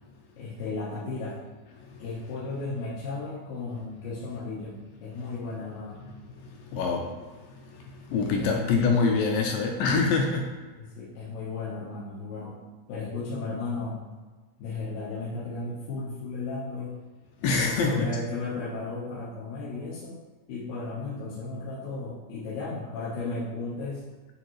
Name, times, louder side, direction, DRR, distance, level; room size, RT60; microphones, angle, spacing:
voice 1, 0.4-1.4 2.0-6.0 8.4-8.9 10.8-12.6 12.9-14.0 14.6-17.0 17.4-20.2 20.5-24.0, left 3 dB, 65° left, -9 dB, 1.8 m, -35 dB
voice 2, 6.4-10.5 17.4-18.1, left 4 dB, 80° left, 1 dB, 2.1 m, -26 dB
8.4 x 3.8 x 3.1 m, 1.3 s
omnidirectional pair, 4.4 m